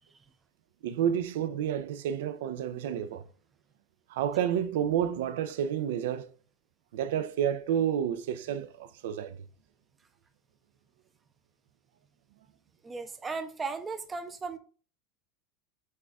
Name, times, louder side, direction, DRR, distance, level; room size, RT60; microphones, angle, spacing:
voice 1, 0.8-3.2 4.1-6.3 6.9-9.4, right 9 dB, 90° right, 0.4 m, -30 dB
voice 2, 12.8-14.6, right 4 dB, 10° right, 0.4 m, -36 dB
6.4 x 2.3 x 3.5 m
supercardioid pair, 175°, 0 cm